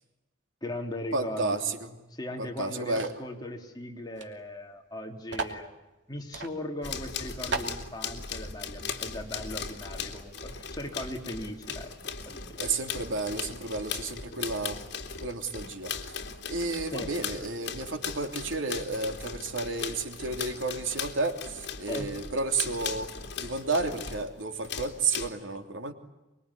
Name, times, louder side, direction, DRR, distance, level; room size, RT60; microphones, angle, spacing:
voice 1, 0.6-1.6 2.1-5.7 6.1-11.9 12.2-12.9 16.9-17.1 21.9-22.1, left 1 dB, 20° left, 1 dB, 3.3 m, -38 dB
voice 2, 1.1-1.9 2.4-3.1 12.6-14.8 15.2-15.9 16.5-23.1 23.4-25.9, right 3 dB, 85° right, 5 dB, 3.0 m, -31 dB
sound 1, 3.0-3.3 4.2-4.3 4.5-4.6 5.3-5.6 6.3-6.5 7.0-7.1 7.5-7.8, right 3 dB, 65° right, 2.8 m, -34 dB
sound 2, 6.8-24.3 24.6-25.3, left 6 dB, 60° left, 2.9 m, -38 dB
25.5 x 23.0 x 9.9 m, 1.1 s
head